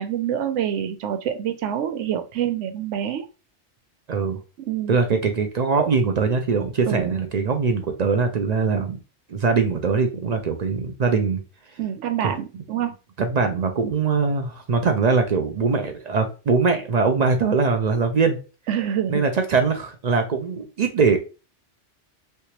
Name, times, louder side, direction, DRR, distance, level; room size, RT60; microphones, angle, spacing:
voice 1, 0.0-3.3 4.6-5.0 5.8-5.9 6.9-7.1 11.8-12.9 18.7-19.2, right 9 dB, 85° right, 8 dB, 0.9 m, -26 dB
voice 2, 4.1-4.4 4.9-9.0 9.3-11.4 12.2-12.3 13.2-18.4 19.1-21.2, right 4 dB, 55° right, 6 dB, 0.4 m, -22 dB
3.3 x 2.8 x 2.9 m, 0.32 s
omnidirectional pair, 1.2 m